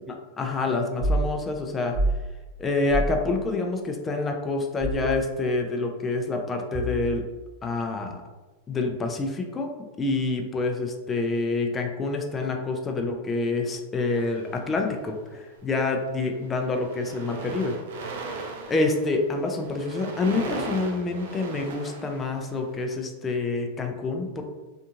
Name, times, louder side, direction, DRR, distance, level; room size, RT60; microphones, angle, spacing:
voice 1, 0.1-2.0 2.6-7.2 7.6-8.2 8.7-17.8 18.2-18.4 18.7-24.4, left 3 dB, 20° left, 3 dB, 0.3 m, -27 dB
sound 1, 1.0-1.3 1.9-2.2 2.9-3.2 4.8-5.1 6.7-7.2, right 2 dB, 30° right, 1.0 m, -26 dB
sound 2, 14.1-15.1 15.8-16.0 16.3-22.8, right 3 dB, 75° right, 0.4 m, -38 dB
2.7 x 2.5 x 2.4 m, 1.2 s
supercardioid pair, 125°, 0 cm